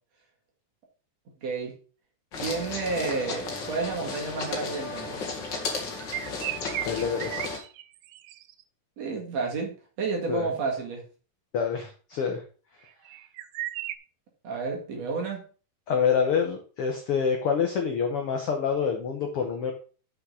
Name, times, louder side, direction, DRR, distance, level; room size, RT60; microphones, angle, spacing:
voice 1, 1.4-1.7 2.4-5.2 9.0-9.7 10.0-11.0 14.4-15.4, right 4 dB, 50° right, 0 dB, 2.8 m, -30 dB
sound 1, 2.3-7.6, left 3 dB, 45° left, 1.6 m, -34 dB
sound 2, 5.9-8.6 12.8-14.0, right 14 dB, 80° right, 2.2 m, -35 dB
voice 2, 6.8-7.6 10.3-10.5 11.5-12.4 15.9-19.7, left 6 dB, 80° left, 3 dB, 1.3 m, -27 dB
6.6 x 6.0 x 5.4 m, 0.37 s
omnidirectional pair, 4.1 m